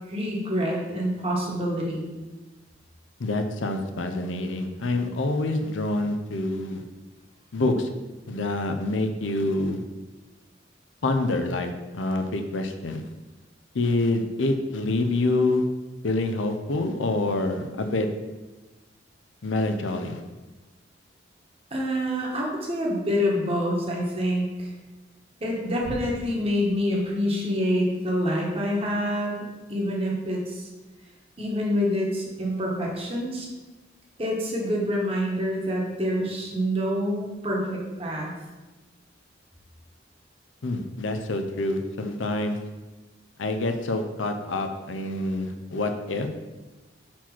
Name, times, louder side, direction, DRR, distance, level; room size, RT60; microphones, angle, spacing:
voice 1, 0.1-2.1 21.7-24.7 25.4-30.7 31.4-33.5 34.2-38.3, equal, 30° right, -3 dB, 1.4 m, -27 dB
voice 2, 3.2-6.8 7.5-7.9 8.3-9.8 11.0-13.0 13.7-15.6 16.0-18.1 19.4-20.2 40.6-42.6 43.4-46.3, left 2 dB, 85° left, 6 dB, 0.7 m, -26 dB
4.5 x 4.4 x 5.8 m, 1.2 s
head